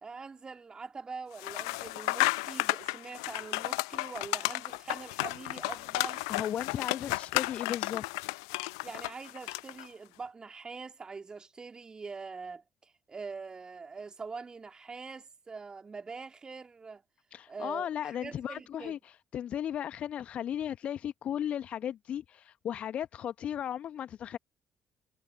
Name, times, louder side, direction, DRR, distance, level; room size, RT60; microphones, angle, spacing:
voice 1, 0.0-6.2 8.8-17.0 17.5-18.9, right 4 dB, 30° right, 3.0 m, -44 dB
sound 1, 1.4-9.9, left 27 dB, 70° left, 0.8 m, -33 dB
voice 2, 6.3-8.3 17.3-24.4, left 10 dB, 50° left, 1.2 m, -36 dB
figure-of-eight pair, 45°, 3 cm